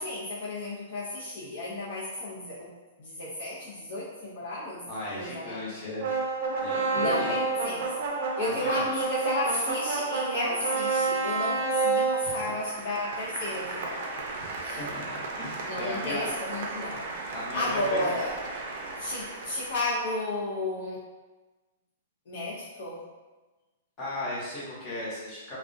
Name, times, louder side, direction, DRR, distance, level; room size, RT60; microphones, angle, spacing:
voice 1, 0.0-2.7 3.0-4.8 5.1-5.8 6.9-7.9 8.3-14.1 14.6-14.8 15.6-17.1 17.5-18.3 18.9-21.0 22.3-23.0, left 2 dB, 60° left, -7 dB, 0.5 m, -33 dB
voice 2, 4.9-6.1 6.6-7.3 8.5-8.8 12.2-12.4 14.4-16.3 17.3-18.2 24.0-25.6, left 1 dB, 25° left, -8 dB, 0.8 m, -36 dB
sound 1, 6.0-20.2, right 4 dB, 50° right, 0.4 m, -31 dB
2.4 x 2.1 x 2.5 m, 1.2 s
hypercardioid pair, 155°, 0 cm